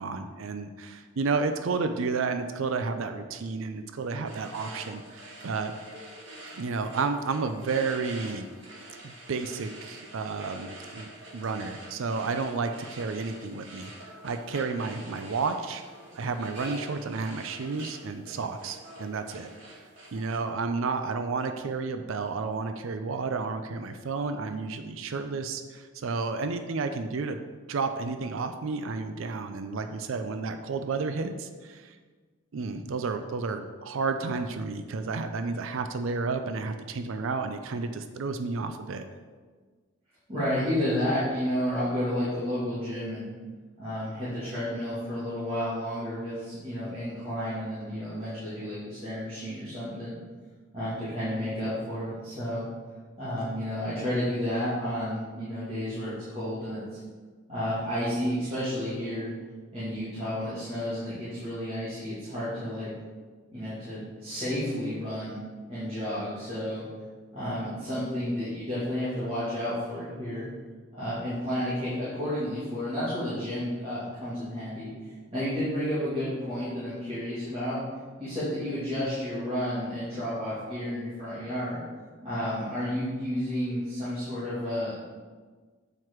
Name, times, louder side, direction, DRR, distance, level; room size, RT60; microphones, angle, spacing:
voice 1, 0.0-5.7 6.6-8.5 9.0-15.8 16.1-19.5 20.1-27.4 27.7-32.0 32.5-39.1, right 4 dB, 75° right, 8 dB, 0.5 m, -31 dB
sound 1, 4.2-20.4, right 1 dB, 60° right, 1.5 m, -46 dB
voice 2, 40.3-43.3 43.8-50.1 50.7-52.6 53.2-57.0 57.5-59.3 59.7-62.9 63.5-65.4 65.7-66.8 67.3-70.5 70.9-74.9 75.3-77.8 78.2-81.8 82.2-84.9, equal, 30° right, -13 dB, 2.3 m, -31 dB
7.7 x 4.6 x 4.6 m, 1.4 s
head